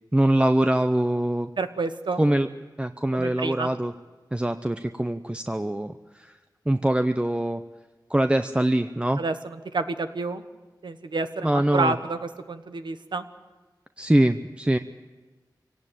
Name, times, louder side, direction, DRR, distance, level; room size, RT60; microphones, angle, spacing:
voice 1, 0.1-1.5 2.2-2.5 2.8-3.9 4.3-6.4 6.7-7.6 8.1-9.2 11.4-12.0 14.0-14.8, right 1 dB, 15° right, 9 dB, 0.7 m, -23 dB
voice 2, 1.6-2.2 3.1-3.7 9.2-10.4 10.8-13.2, right 3 dB, 85° right, 9 dB, 1.3 m, -29 dB
24.5 x 17.5 x 9.1 m, 1.3 s
wide cardioid pair, 75°, 8 cm